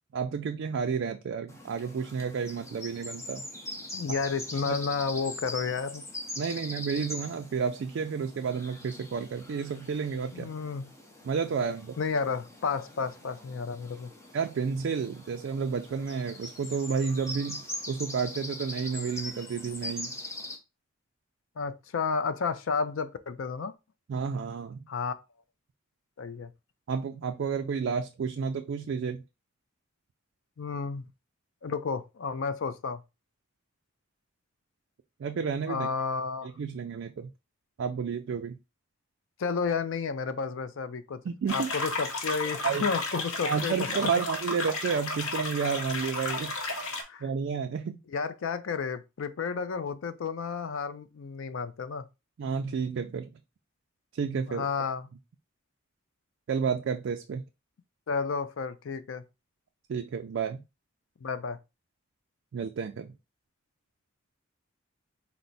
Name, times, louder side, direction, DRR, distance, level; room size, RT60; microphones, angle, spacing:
voice 1, 0.1-3.4 4.7-4.8 6.4-10.5 11.2-11.9 14.3-17.6 17.9-20.1 24.1-24.8 26.9-29.2 35.2-35.9 36.4-37.3 37.8-38.6 41.2-41.7 42.6-42.9 43.4-46.5 47.2-48.0 52.4-53.3 54.1-54.7 56.5-57.4 59.9-60.6 62.5-63.1, right 6 dB, 60° right, 0.3 m, -31 dB
sound 1, 1.5-20.6, left 1 dB, 15° left, 0.6 m, -42 dB
voice 2, 3.9-6.0 10.3-10.9 12.0-14.1 21.6-23.7 24.9-25.1 26.2-26.5 30.6-31.1 31.6-33.0 35.7-36.5 39.4-41.2 41.5-43.9 47.0-47.3 48.1-52.0 54.5-55.1 58.1-59.2 61.2-61.6, left 5 dB, 70° left, 0.4 m, -31 dB
sound 2, 41.5-47.0, left 2 dB, 85° left, 0.9 m, -33 dB
4.4 x 2.0 x 3.9 m
head